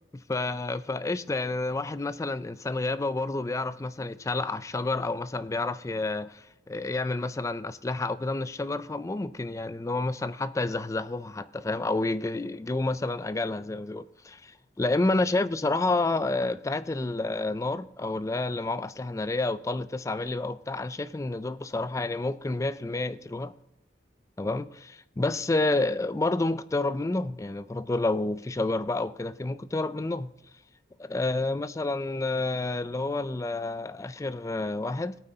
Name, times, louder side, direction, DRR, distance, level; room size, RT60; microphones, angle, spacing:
voice 1, 0.3-23.5 24.4-30.3 31.0-35.2, left 2 dB, 15° left, 0.3 m, -29 dB
18.0 x 8.8 x 2.8 m
head